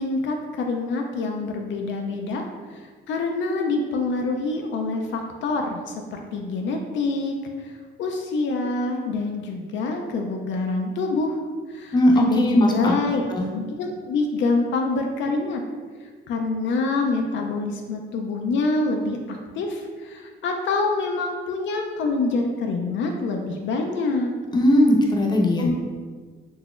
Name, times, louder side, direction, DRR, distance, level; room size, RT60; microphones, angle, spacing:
voice 1, 0.0-2.4 2.7-11.4 11.7-13.2 13.5-15.6 16.0-24.3 25.6-25.7, left 3 dB, 70° left, 2 dB, 0.4 m, -26 dB
voice 2, 11.9-12.9 13.3-13.5 24.5-25.7, equal, 20° left, 0 dB, 0.6 m, -18 dB
3.9 x 2.8 x 2.4 m, 1.5 s
cardioid pair, 90°, 20 cm